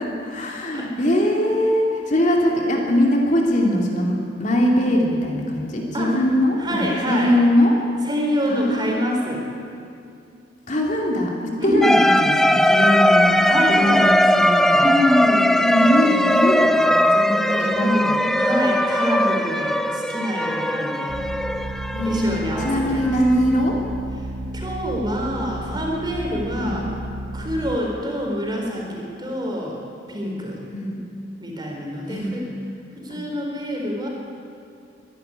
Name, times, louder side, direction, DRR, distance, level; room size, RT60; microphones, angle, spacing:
voice 1, 0.0-7.8 8.5-9.1 10.7-14.9 15.6-18.3 21.9-23.8 26.6-26.8 30.7-31.1 32.1-32.3 33.1-33.2, equal, 40° left, 0 dB, 2.8 m, -21 dB
voice 2, 6.6-7.3 8.0-9.4 11.6-11.9 13.4-14.1 14.8-15.6 16.0-16.3 17.8-18.1 18.4-21.1 22.1-23.1 24.5-26.9 27.3-29.8 30.1-30.6 31.4-32.5 33.0-34.1, equal, 25° right, -1 dB, 4.3 m, -25 dB
sound 1, 11.8-23.6, equal, ahead, 0.5 m, -19 dB
sound 2, 21.1-27.8, right 1 dB, 70° right, 1.1 m, -32 dB
23.0 x 11.5 x 10.0 m, 2.4 s
head